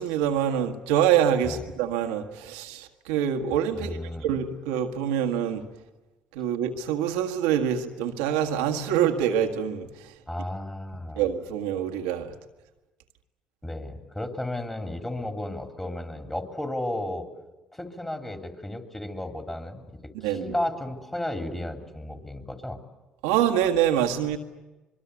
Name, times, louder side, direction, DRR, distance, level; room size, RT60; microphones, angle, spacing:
voice 1, 0.0-5.6 6.3-10.1 11.2-12.3 20.1-20.5 23.2-24.4, right 9 dB, 90° right, 5 dB, 1.7 m, -25 dB
voice 2, 3.8-4.3 10.3-11.2 13.6-17.3 17.7-22.8, left 1 dB, 10° left, 5 dB, 3.5 m, -33 dB
25.0 x 22.5 x 8.4 m, 1.1 s
supercardioid pair, 75°, 3 cm